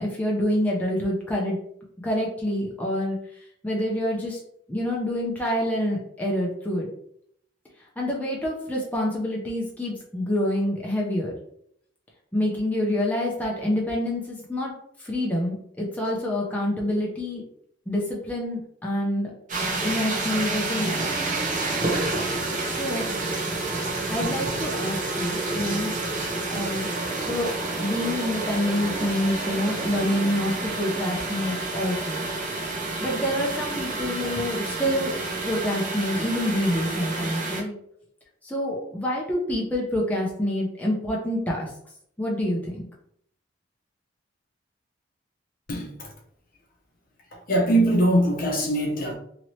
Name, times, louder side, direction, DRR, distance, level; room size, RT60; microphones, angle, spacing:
voice 1, 0.0-1.6 2.0-4.4 4.7-6.9 8.0-11.3 12.3-14.7 15.0-17.4 17.9-19.3 19.8-21.1 22.7-23.1 24.1-26.0 26.5-26.9 27.2-32.2 33.0-37.8 38.4-41.7 42.2-42.9, left 1 dB, 10° left, -3 dB, 0.6 m, -27 dB
Toilet Flush Long, 19.5-37.6, right 2 dB, 40° right, 0.7 m, -29 dB
voice 2, 45.7-46.1 47.3-49.1, right 1 dB, 50° left, 1 dB, 0.7 m, -22 dB
2.9 x 2.8 x 3.1 m, 0.69 s
head